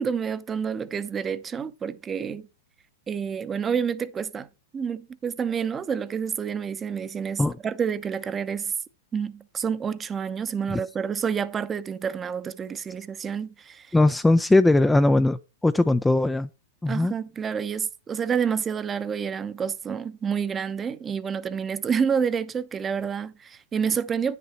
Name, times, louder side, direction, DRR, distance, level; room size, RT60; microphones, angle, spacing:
voice 1, 0.0-2.5 3.1-4.5 4.7-8.7 9.1-13.9 16.9-24.4, right 7 dB, 20° right, 0.8 m, -28 dB
voice 2, 13.9-16.5 16.8-17.1, left 2 dB, 5° left, 0.4 m, -20 dB
9.7 x 6.8 x 4.4 m
hypercardioid pair, 105°, 0 cm